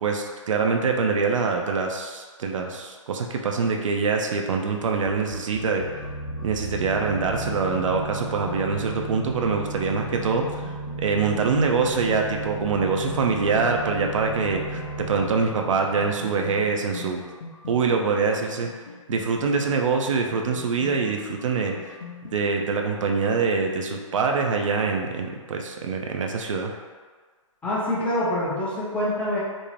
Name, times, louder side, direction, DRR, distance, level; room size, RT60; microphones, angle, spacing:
voice 1, 0.0-5.9 6.4-10.6 11.0-17.2 17.7-18.7 19.1-21.8 22.3-26.7, right 4 dB, 70° right, 2 dB, 0.4 m, -24 dB
sound 1, 5.1-22.4, left 3 dB, 65° left, 0.6 m, -42 dB
sound 2, 5.5-17.1, right 2 dB, 30° left, 0.9 m, -35 dB
voice 2, 27.6-29.4, left 1 dB, 5° left, -8 dB, 0.4 m, -25 dB
2.6 x 2.0 x 3.0 m, 1.5 s
hypercardioid pair, 135°, 17 cm